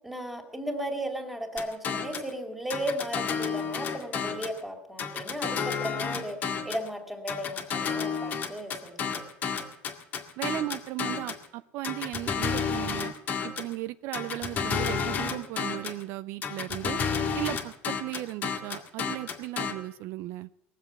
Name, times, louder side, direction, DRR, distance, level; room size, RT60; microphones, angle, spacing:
voice 1, 0.0-9.2, equal, 5° right, 5 dB, 2.5 m, -35 dB
sound 1, 1.6-2.3 2.7-4.6 5.0-6.9 7.3-11.4 11.8-13.7 14.1-16.0 16.4-19.7, left 6 dB, 40° left, 1.8 m, -31 dB
voice 2, 10.4-13.1 13.4-17.0 17.3-20.5, right 17 dB, 65° right, 15 dB, 0.4 m, -36 dB
19.0 x 7.4 x 8.1 m, 0.83 s
supercardioid pair, 120°, 4 cm